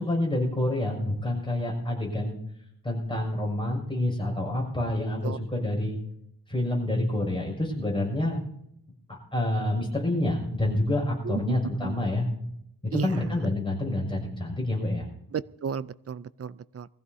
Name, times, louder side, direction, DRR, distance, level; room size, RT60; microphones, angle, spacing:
voice 1, 0.0-2.4 2.8-6.0 6.5-8.4 9.1-12.3 12.8-15.1, left 1 dB, 15° left, -1 dB, 6.1 m, -28 dB
voice 2, 11.3-11.6 11.8-12.0 12.9-13.1 15.3-16.9, right 7 dB, 45° right, 17 dB, 0.4 m, -33 dB
22.5 x 15.0 x 2.7 m, 0.77 s
wide cardioid pair, 85°, 36 cm